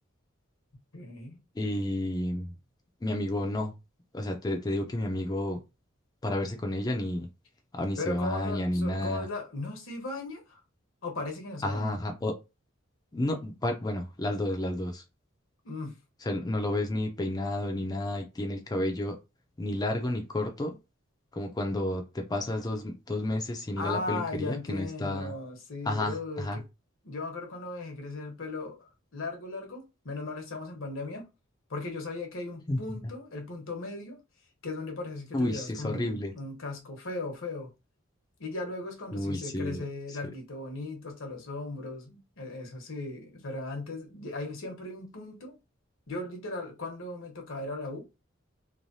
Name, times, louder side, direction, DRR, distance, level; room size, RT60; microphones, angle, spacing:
voice 1, 0.9-1.4 8.0-10.6 11.0-12.0 15.6-16.0 23.8-26.7 27.0-31.3 31.7-34.2 34.6-37.7 38.4-45.6 46.1-48.1, left 2 dB, 75° left, 1.1 m, -37 dB
voice 2, 1.6-2.5 3.0-3.7 4.1-5.6 6.2-7.3 7.7-9.3 11.6-12.3 13.1-15.0 16.2-19.2 19.6-20.7 21.3-25.3 25.9-26.6 32.7-32.8 35.3-36.3 39.1-39.8, left 1 dB, 20° left, 0.4 m, -31 dB
3.1 x 2.2 x 2.6 m
head